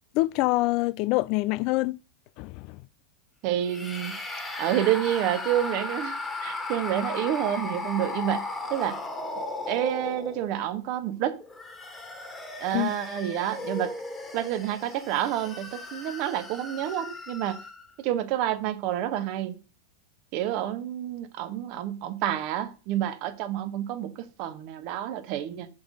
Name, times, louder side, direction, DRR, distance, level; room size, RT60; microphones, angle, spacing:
voice 1, 0.1-2.0 2.4-2.8 12.7-12.9, left 20 dB, 40° left, 0.4 m, -25 dB
voice 2, 3.4-4.1 4.6-8.4 8.7-9.0 9.7-11.4 12.6-13.9 14.3-17.6 18.0-19.6 20.3-25.7, right 12 dB, 45° right, 1.3 m, -29 dB
sound 1, 3.6-10.7 11.4-17.9, left 2 dB, 10° left, 1.7 m, -36 dB
6.2 x 6.2 x 6.4 m
figure-of-eight pair, 90°, 0 cm